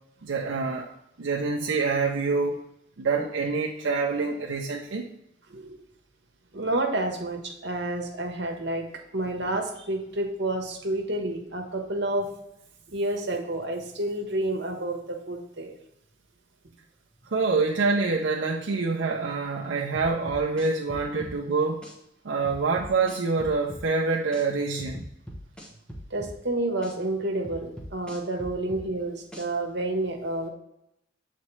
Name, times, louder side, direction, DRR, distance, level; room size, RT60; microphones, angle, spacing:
voice 1, 0.2-0.9 1.2-2.6 3.0-5.1 17.2-21.8 22.2-25.1, right 4 dB, 85° right, -1 dB, 0.6 m, -26 dB
voice 2, 6.5-8.9 9.1-12.3 12.9-15.8 26.1-30.5, right 1 dB, 65° right, 3 dB, 1.1 m, -29 dB
sound 1, 19.9-21.4 21.8-21.9 22.4-23.9 24.3-24.4 24.8-26.4 26.8-26.9 27.4-28.9 29.3-29.5, equal, 5° left, 0.9 m, -41 dB
7.3 x 4.2 x 3.2 m, 0.81 s
head